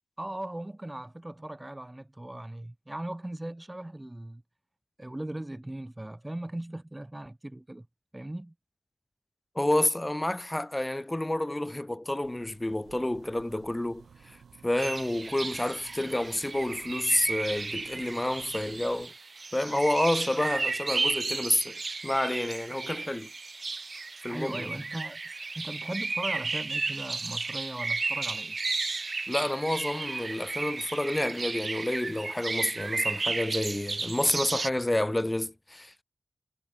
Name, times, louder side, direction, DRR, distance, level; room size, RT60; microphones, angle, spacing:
voice 1, 0.2-4.4 5.0-7.9 8.1-8.5 24.3-28.6, right 1 dB, 15° right, 0.9 m, -38 dB
voice 2, 9.5-14.4 14.6-19.1 19.5-23.3 24.2-24.7 29.3-36.0, left 1 dB, 15° left, 1.2 m, -29 dB
sound 1, 12.2-19.1, right 6 dB, 90° right, 3.6 m, -55 dB
sound 2, 14.8-34.7, right 3 dB, 40° right, 1.5 m, -34 dB
wide cardioid pair, 115°, 0 cm